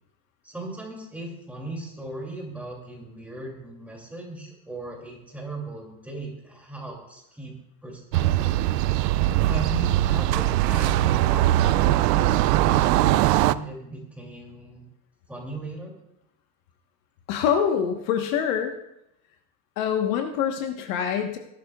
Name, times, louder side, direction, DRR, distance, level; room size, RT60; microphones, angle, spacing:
voice 1, 0.4-7.5 7.8-8.5 9.4-14.8 15.3-15.9, right 2 dB, 5° right, -2 dB, 2.6 m, -37 dB
sound 1, 8.1-13.6, right 14 dB, 70° right, 0.6 m, -21 dB
voice 2, 17.3-18.7 19.8-21.4, left 8 dB, 55° left, 5 dB, 1.2 m, -25 dB
23.0 x 12.0 x 2.3 m, 0.84 s
supercardioid pair, 165°, 50 cm